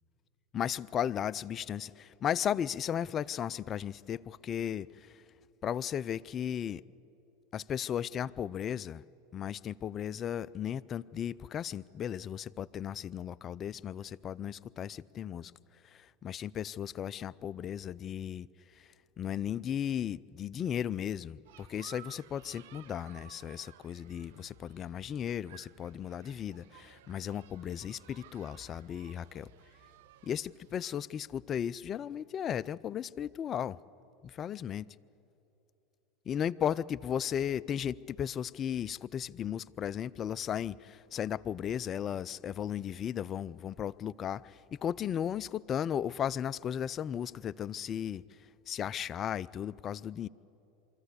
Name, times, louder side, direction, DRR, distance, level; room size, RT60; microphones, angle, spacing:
voice 1, 0.5-5.2 5.6-6.8 7.5-9.0 9.3-15.5 15.8-18.5 18.8-18.9 19.2-29.5 30.2-33.8 34.2-34.9 36.3-48.2 48.7-50.3, left 9 dB, 35° left, 0.4 m, -35 dB
sound 1, 21.5-31.1, right 12 dB, 75° right, 0.5 m, -57 dB
24.0 x 14.0 x 8.2 m
hypercardioid pair, 95°, 0 cm